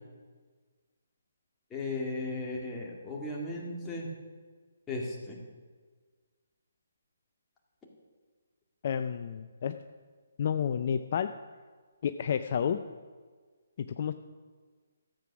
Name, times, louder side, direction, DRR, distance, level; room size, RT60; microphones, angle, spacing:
voice 1, 1.7-4.1 4.9-5.4, left 2 dB, 10° left, -3 dB, 2.1 m, -36 dB
voice 2, 8.8-9.8 10.4-11.3 12.0-12.8 14.0-14.1, left 8 dB, 45° left, 9 dB, 0.5 m, -30 dB
13.5 x 7.7 x 6.1 m, 1.5 s
hypercardioid pair, 155°, 0 cm